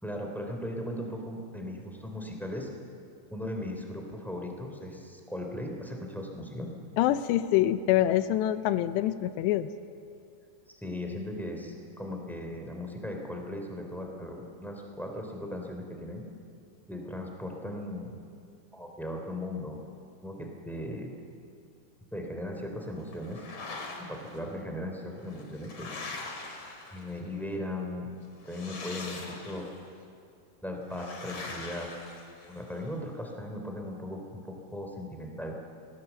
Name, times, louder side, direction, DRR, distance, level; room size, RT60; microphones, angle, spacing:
voice 1, 0.0-2.7 3.3-6.7 10.7-16.2 16.9-18.2 18.7-19.8 20.2-21.1 22.1-23.4 24.0-25.9 26.9-28.1 28.4-29.7 30.6-31.9 32.5-34.4 34.7-35.5, left 1 dB, ahead, 2 dB, 1.5 m, -37 dB
voice 2, 7.0-9.7, left 13 dB, 80° left, 11 dB, 2.7 m, -25 dB
sound 1, 23.1-24.4 25.2-27.3 28.4-29.8 30.9-32.8, left 3 dB, 40° left, 3.2 m, -42 dB
28.0 x 20.5 x 7.1 m, 2.4 s
omnidirectional pair, 5.5 m